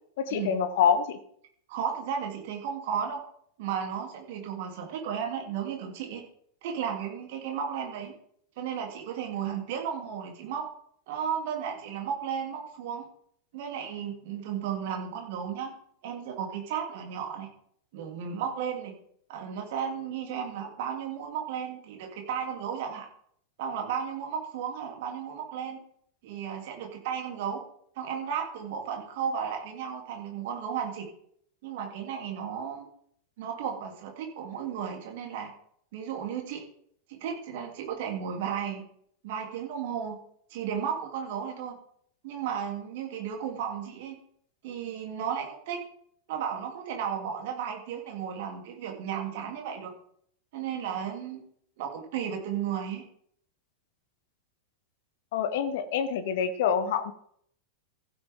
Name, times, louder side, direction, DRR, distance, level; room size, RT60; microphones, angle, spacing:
voice 1, 0.2-1.2 55.3-57.1, left 7 dB, 55° left, 10 dB, 1.1 m, -26 dB
voice 2, 1.7-3.2 3.6-6.2 6.6-8.1 8.6-10.7 11.1-13.1 13.5-15.7 16.0-17.5 17.9-18.9 19.3-23.1 23.6-25.8 26.2-27.6 28.0-31.1 31.6-32.9 33.4-35.5 35.9-36.6 37.1-38.8 39.2-40.2 40.5-41.8 42.2-44.2 44.6-45.8 46.3-49.9 50.5-51.4 51.8-53.0, right 8 dB, 50° right, 2 dB, 3.0 m, -34 dB
15.5 x 9.2 x 3.7 m, 0.66 s
figure-of-eight pair, 90°, 0 cm